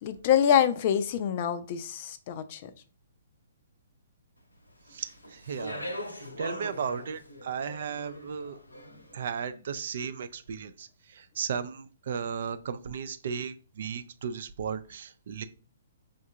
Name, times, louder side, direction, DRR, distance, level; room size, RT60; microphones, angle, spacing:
voice 1, 0.0-2.7, left 9 dB, 40° left, 12 dB, 0.4 m, -25 dB
Speech, 4.9-9.2, left 1 dB, 85° left, 0.7 m, -41 dB
voice 2, 4.9-5.8 6.4-8.6 9.1-15.4, right 7 dB, 55° right, 12 dB, 0.4 m, -35 dB
5.0 x 2.3 x 2.7 m, 0.37 s
figure-of-eight pair, 125°, 0 cm